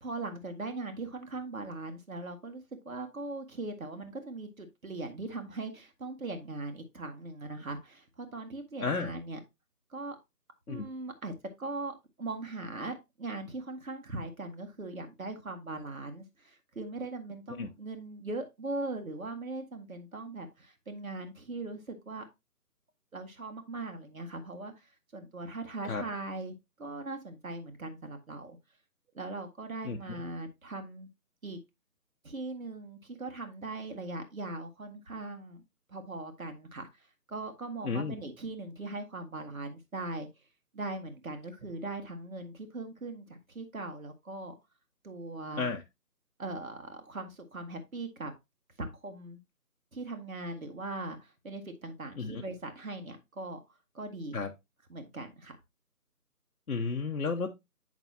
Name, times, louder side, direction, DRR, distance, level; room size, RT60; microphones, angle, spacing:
voice 1, 0.0-9.4 9.9-10.2 10.7-22.2 23.1-28.6 29.1-31.1 31.4-31.6 32.2-35.6 35.9-40.3 40.7-44.5 45.0-45.7 46.4-48.3 48.8-49.4 49.9-53.6 53.9-54.4 54.9-55.6, right 2 dB, 60° right, 1.8 m, -40 dB
voice 2, 8.8-9.1 10.7-10.8 17.6-17.7 25.8-26.0 29.8-30.0 37.8-38.1 45.5-45.8 52.2-52.4 54.3-54.5 56.7-57.5, left 4 dB, 65° left, 1.0 m, -32 dB
8.6 x 6.0 x 2.8 m
figure-of-eight pair, 160°, 48 cm